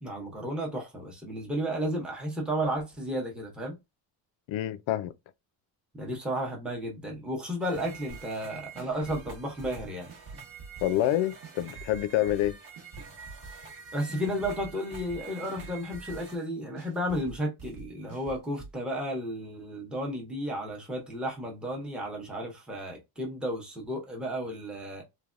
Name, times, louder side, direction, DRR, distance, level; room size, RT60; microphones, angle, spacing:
voice 1, 0.0-3.8 5.9-10.1 13.9-25.0, equal, ahead, 0.6 m, -33 dB
voice 2, 4.5-5.1 10.8-12.6, left 13 dB, 90° left, 0.5 m, -27 dB
sound 1, 7.6-16.4, right 5 dB, 75° right, 1.3 m, -47 dB
sound 2, 8.1-8.5 8.8-11.1 11.4-13.8 14.1-16.5 16.8-18.7, right 4 dB, 45° right, 0.9 m, -46 dB
3.2 x 2.2 x 2.4 m
cardioid pair, 180°, 45 cm